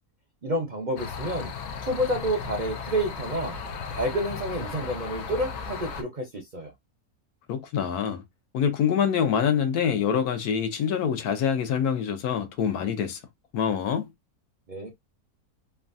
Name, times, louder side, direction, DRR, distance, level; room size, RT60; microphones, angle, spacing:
voice 1, 0.4-1.5 1.8-3.6 3.9-6.7 14.7-14.9, right 1 dB, 50° right, 0.5 m, -29 dB
sound 1, 1.0-6.0, left 5 dB, 65° left, 0.7 m, -36 dB
voice 2, 7.5-8.2 8.5-13.2 13.5-14.1, left 8 dB, 85° left, 1.2 m, -25 dB
3.1 x 2.3 x 2.5 m
omnidirectional pair, 1.6 m